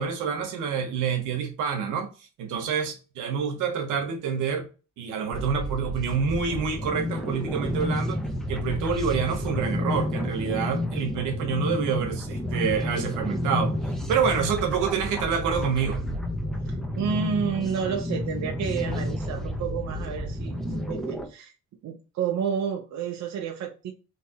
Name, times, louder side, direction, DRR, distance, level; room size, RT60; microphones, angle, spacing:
voice 1, 0.0-2.1 2.4-4.7 5.0-8.2 8.5-13.7 14.1-16.0, right 6 dB, 90° right, 0.9 m, -27 dB
sound 1, 5.3-21.3, left 1 dB, ahead, 0.6 m, -30 dB
voice 2, 16.7-21.5 21.8-23.9, right 7 dB, 65° right, 0.7 m, -30 dB
3.3 x 2.8 x 2.8 m
cardioid pair, 90°, 30 cm